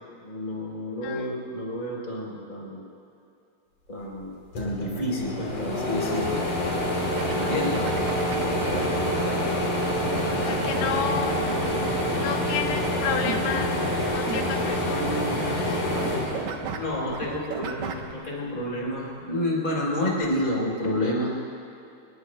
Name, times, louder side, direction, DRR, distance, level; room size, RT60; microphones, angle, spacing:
voice 1, 0.2-2.8 3.9-6.4 7.3-7.8 16.7-21.3, left 1 dB, 10° left, -3 dB, 3.9 m, -29 dB
sound 1, 4.2-4.3 4.5-17.1 17.6-18.7, equal, 50° left, 4.2 m, -27 dB
sound 2, 7.2-8.8 10.0-15.7 15.9-18.1, right 7 dB, 90° right, 3.0 m, -36 dB
voice 2, 10.3-11.3 12.2-13.8 14.1-15.9, left 7 dB, 85° left, 5 dB, 2.6 m, -32 dB
Bass guitar, 15.0-17.6, right 8 dB, 50° right, 1.3 m, -40 dB
28.0 x 21.5 x 2.3 m, 2.6 s
omnidirectional pair, 4.4 m